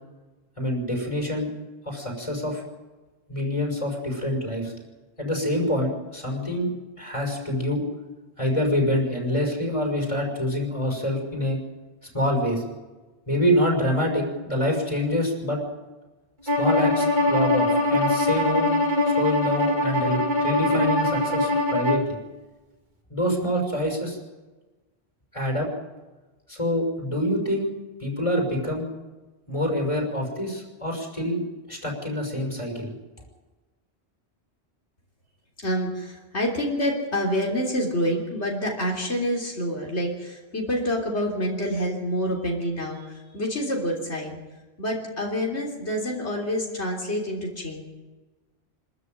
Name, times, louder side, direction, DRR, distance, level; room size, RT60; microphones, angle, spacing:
voice 1, 0.6-1.5 1.8-2.6 3.3-4.7 5.2-6.7 7.0-7.8 8.4-11.6 12.1-12.6 13.3-15.6 16.6-18.7 19.1-22.2 23.1-24.2 25.3-25.7 26.5-27.7 28.0-28.9 29.5-31.4 31.7-32.9, equal, 30° left, 1 dB, 6.0 m, -26 dB
Bowed string instrument, 16.5-22.1, left 1 dB, 45° right, 2.4 m, -22 dB
voice 2, 35.6-44.4 44.8-47.8, equal, 90° left, -1 dB, 3.8 m, -27 dB
25.5 x 13.5 x 9.2 m, 1.2 s
omnidirectional pair, 1.1 m